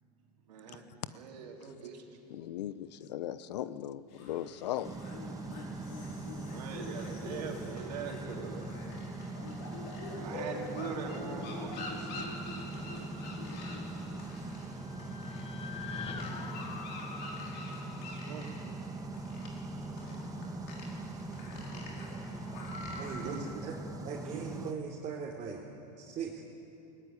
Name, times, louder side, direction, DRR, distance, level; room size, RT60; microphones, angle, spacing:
voice 1, 0.5-0.8 1.1-2.0 6.5-8.7 10.2-11.7 17.4-17.5 18.1-18.5 23.2-23.7 24.3-24.7, right 6 dB, 90° right, 0 dB, 3.6 m, -42 dB
voice 2, 2.3-5.0 12.2-12.3, left 12 dB, 85° left, 15 dB, 0.9 m, -38 dB
sound 1, 4.1-23.4, left 2 dB, 60° left, 5.7 m, -46 dB
sound 2, 4.8-24.7, right 2 dB, 15° right, 1.7 m, -41 dB
sound 3, 14.3-18.6, left 6 dB, 30° left, 1.7 m, -45 dB
voice 3, 23.0-23.7 24.0-25.6 26.0-26.4, right 6 dB, 35° right, -2 dB, 3.2 m, -40 dB
20.5 x 18.0 x 9.9 m, 2.8 s
supercardioid pair, 110°, 21 cm